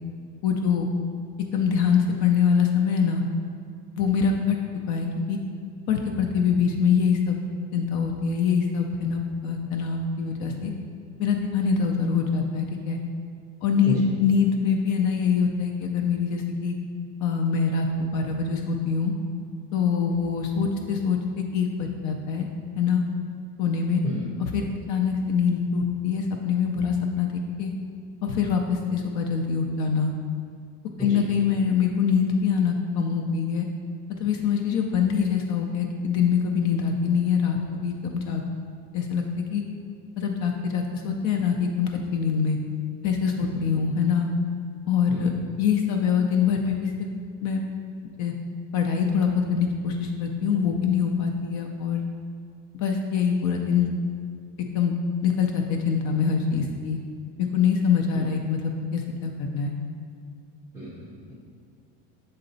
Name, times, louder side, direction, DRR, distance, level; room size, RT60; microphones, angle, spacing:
voice 1, 0.4-0.9 1.4-3.2 4.0-4.6 4.9-5.4 5.9-7.4 7.7-10.7 11.2-13.0 13.6-16.7 17.2-19.1 19.7-21.2 21.5-22.5 22.8-23.0 23.6-24.0 24.4-27.7 28.2-30.1 31.0-33.7 34.2-38.4 38.9-39.6 40.2-42.6 43.0-44.3 44.9-45.3 45.6-47.1 47.4-47.6 48.2-48.3 48.7-52.0 52.7-53.9 54.7-54.9 55.2-57.0 57.5-58.6 58.9-59.7, left 6 dB, 50° left, 3 dB, 0.5 m, -24 dB
voice 2, 60.7-61.3, right 1 dB, 10° right, -7 dB, 0.4 m, -32 dB
6.7 x 4.0 x 3.9 m, 2.2 s
cardioid pair, 175°, 37 cm